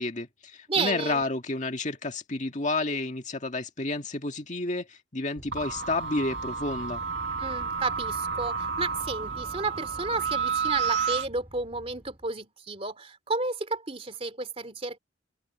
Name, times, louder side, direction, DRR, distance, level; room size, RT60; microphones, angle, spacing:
voice 1, 0.0-7.0, left 2 dB, 40° left, 1.9 m, -30 dB
voice 2, 0.7-1.2 7.4-15.0, right 3 dB, 30° right, 3.0 m, -32 dB
Wind, 5.3-12.3, equal, 10° right, 4.9 m, -46 dB
sound 1, 5.5-11.3, right 6 dB, 65° right, 2.1 m, -31 dB
open air
head